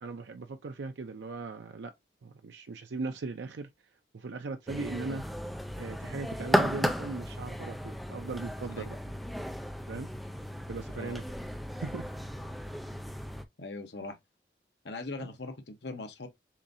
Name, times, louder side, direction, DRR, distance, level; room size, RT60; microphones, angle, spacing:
voice 1, 0.0-1.9 2.2-3.7 4.1-5.2 5.8-9.0 9.9-10.1 10.7-11.2 11.7-12.1 15.2-15.3, right 3 dB, 90° right, 0.5 m, -38 dB
sound 1, 4.7-13.4, equal, ahead, 0.5 m, -34 dB
voice 2, 13.6-14.2 14.8-16.3, left 3 dB, 80° left, 1.0 m, -40 dB
7.1 x 2.6 x 2.7 m
head